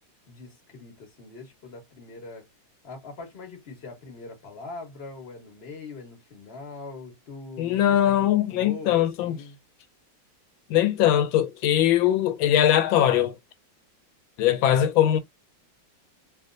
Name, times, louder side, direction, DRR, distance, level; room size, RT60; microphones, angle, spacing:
voice 1, 0.3-2.5 2.8-9.6, left 3 dB, 35° left, 1.6 m, -42 dB
voice 2, 7.6-9.4 10.7-13.4 14.4-15.2, left 11 dB, 90° left, 1.4 m, -21 dB
3.4 x 2.8 x 2.5 m
omnidirectional pair, 2.1 m